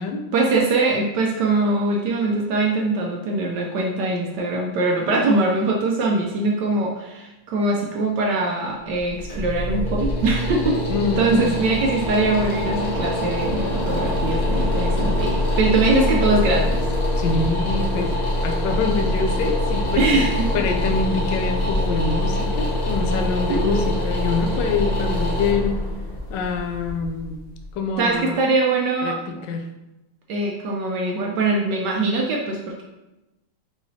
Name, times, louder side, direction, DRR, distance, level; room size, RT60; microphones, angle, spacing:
voice 1, 0.3-10.8 11.2-16.8 20.0-20.5 23.5-24.0 28.0-29.2 30.3-32.8, right 2 dB, 75° right, 0 dB, 1.0 m, -22 dB
sound 1, 8.9-27.9, left 1 dB, 45° left, 0.7 m, -24 dB
voice 2, 10.9-11.5 17.2-20.2 20.5-25.8 26.3-27.4 27.7-28.4 29.0-29.7, left 4 dB, 75° left, 4 dB, 1.0 m, -25 dB
5.7 x 3.0 x 2.7 m, 0.99 s
omnidirectional pair, 2.3 m